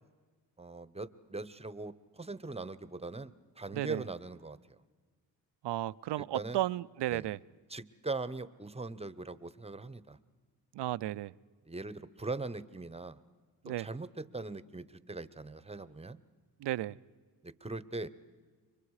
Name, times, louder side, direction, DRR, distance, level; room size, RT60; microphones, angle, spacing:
voice 1, 0.6-4.8 6.3-6.6 7.1-7.3 7.7-10.2 11.7-13.2 13.6-16.2 17.4-18.1, right 3 dB, 15° right, 1.0 m, -41 dB
voice 2, 3.7-4.0 5.6-7.4 10.7-11.3 13.6-13.9 16.6-17.0, right 14 dB, 70° right, 0.6 m, -34 dB
29.5 x 24.5 x 4.9 m
cardioid pair, 80°, 43 cm